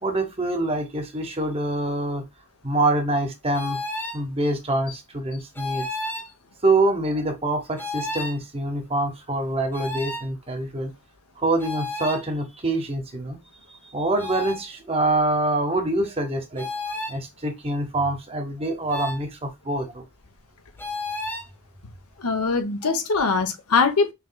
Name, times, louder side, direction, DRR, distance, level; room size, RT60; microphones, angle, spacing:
voice 1, 0.0-2.2 2.6-3.8 4.1-5.9 6.6-10.9 11.4-13.4 13.7-16.7 17.1-20.0 21.3-21.4 22.8-22.9, right 2 dB, 25° right, 1.0 m, -25 dB
sound 1, 3.5-4.2 5.5-6.3 7.8-8.4 9.7-10.3 11.6-12.2 14.2-14.6 16.6-17.2 18.9-19.2 20.8-21.5, left 2 dB, 10° left, 1.0 m, -31 dB
voice 2, 22.2-24.1, left 4 dB, 80° left, 0.9 m, -22 dB
5.8 x 3.1 x 2.2 m
head